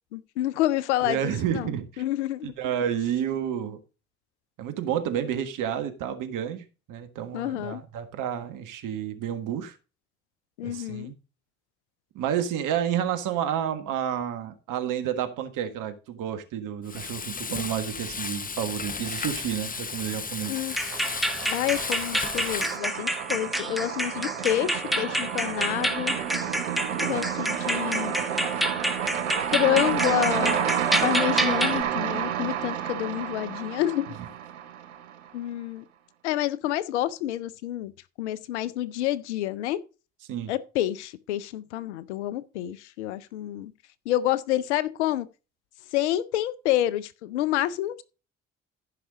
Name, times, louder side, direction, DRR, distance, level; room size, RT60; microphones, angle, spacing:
voice 1, 0.1-2.5 7.3-7.8 10.6-11.1 20.5-20.7 21.5-26.1 27.0-28.1 29.5-34.2 35.3-35.8 36.2-37.9 38.2-39.8 40.5-43.7 44.1-45.3 45.9-48.0, left 14 dB, 85° left, 0.7 m, -28 dB
voice 2, 1.0-2.0 2.4-3.8 4.6-9.8 10.6-11.1 12.1-20.5 26.9-27.3 40.3-40.5, right 9 dB, 70° right, 1.6 m, -30 dB
Frying (food), 16.9-22.8, left 5 dB, 25° left, 0.9 m, -34 dB
sound 1, 19.0-19.8 20.1-35.3, right 9 dB, 90° right, 0.9 m, -30 dB
sound 2, 20.7-31.8, equal, ahead, 1.8 m, -29 dB
14.5 x 5.9 x 3.9 m
hypercardioid pair, 45°, 33 cm